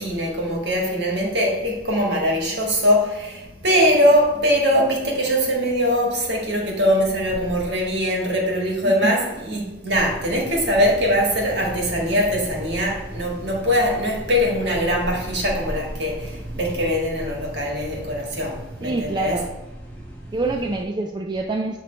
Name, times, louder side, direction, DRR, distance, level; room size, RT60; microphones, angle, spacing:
voice 1, 0.0-19.4, equal, 60° right, 1.7 m, -22 dB
voice 2, 8.8-9.2 18.8-19.5 20.3-21.8, right 2 dB, 20° right, 0.3 m, -26 dB
sound 1, 9.9-20.8, right 1 dB, 5° left, 1.1 m, -36 dB
8.2 x 3.1 x 4.4 m
head